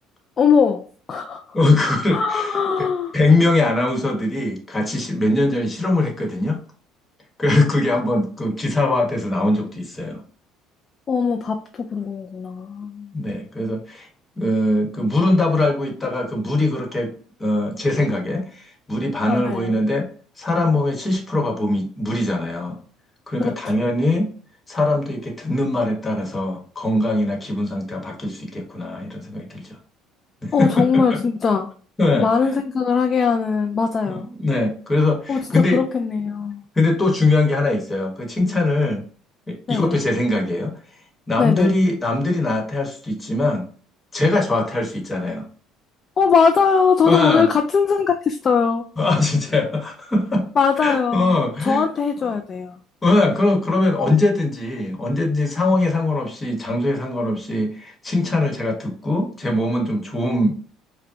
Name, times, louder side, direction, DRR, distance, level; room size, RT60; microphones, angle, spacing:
voice 1, 0.4-0.8 1.1-1.6 2.1-3.2 11.1-13.1 19.3-19.8 23.4-23.5 30.5-31.7 32.1-34.3 35.3-36.6 39.7-40.0 41.4-41.8 46.2-48.8 50.6-52.8, left 5 dB, 35° left, 0.4 m, -20 dB
voice 2, 1.5-2.9 3.1-6.6 7.4-10.2 13.1-14.1 14.4-20.1 20.4-22.8 23.3-24.3 24.7-29.8 30.4-31.2 32.0-32.3 34.1-35.8 36.7-39.0 39.5-40.8 41.3-43.7 44.1-45.5 47.0-47.5 49.0-50.5 50.8-51.8 53.0-60.5, left 2 dB, 20° left, 1.2 m, -21 dB
5.1 x 2.2 x 2.7 m
cardioid pair, 110°, 0 cm